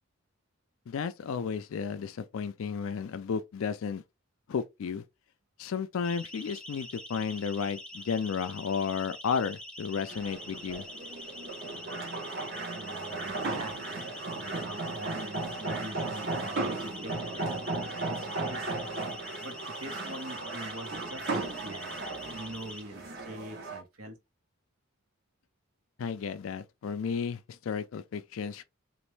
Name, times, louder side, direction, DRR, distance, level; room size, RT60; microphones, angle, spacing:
voice 1, 0.9-4.0 4.5-5.0 5.6-10.9 26.0-28.6, left 6 dB, 75° left, 0.4 m, -33 dB
Siren, 6.0-22.8, left 1 dB, 5° left, 0.4 m, -45 dB
sound 1, 10.1-23.8, right 3 dB, 50° right, 0.9 m, -36 dB
voice 2, 12.7-14.0 14.4-18.7 19.4-22.1 22.3-24.2, right 1 dB, 80° right, 1.1 m, -44 dB
3.1 x 2.5 x 3.1 m
head